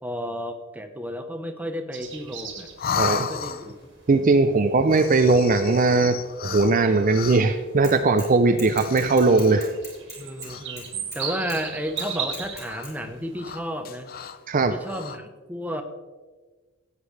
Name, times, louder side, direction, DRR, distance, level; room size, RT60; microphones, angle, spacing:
voice 1, 0.0-2.7 3.0-3.7 10.2-14.1 14.7-15.8, equal, 10° right, 6 dB, 0.9 m, -32 dB
sound 1, 1.9-13.6, right 7 dB, 60° right, 1.7 m, -39 dB
sound 2, 2.8-3.9 4.8-7.6 8.6-9.8 10.4-10.9 11.2-12.4 12.7-12.9 13.3-14.4 14.8-15.2, left 7 dB, 45° left, 0.5 m, -34 dB
voice 2, 3.0-3.3 4.1-9.7 14.5-14.7, right 3 dB, 40° right, 8 dB, 0.5 m, -19 dB
Bicycle / Mechanisms, 7.8-8.3 8.6-11.2 11.5-11.6 12.0-12.9, left 1 dB, 15° left, 3.3 m, -40 dB
16.0 x 8.3 x 3.3 m, 1.3 s
head